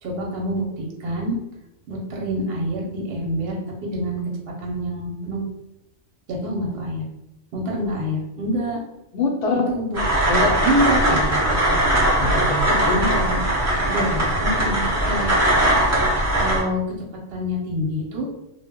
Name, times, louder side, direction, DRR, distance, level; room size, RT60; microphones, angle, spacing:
voice 1, 0.0-1.4 1.9-4.2 4.6-5.5 6.3-7.0 7.5-8.8 9.7-10.0 10.6-11.2 12.9-13.4 13.9-15.3 16.4-16.8 17.3-18.3, equal, 60° right, -2 dB, 0.8 m, -26 dB
voice 2, 9.1-9.7 10.3-10.6 11.1-11.8 12.2-13.0, left 2 dB, 65° left, 1 dB, 0.8 m, -25 dB
sound 1, 9.9-16.6, right 1 dB, 20° right, 0.4 m, -20 dB
2.1 x 2.1 x 3.5 m, 0.86 s
omnidirectional pair, 1.3 m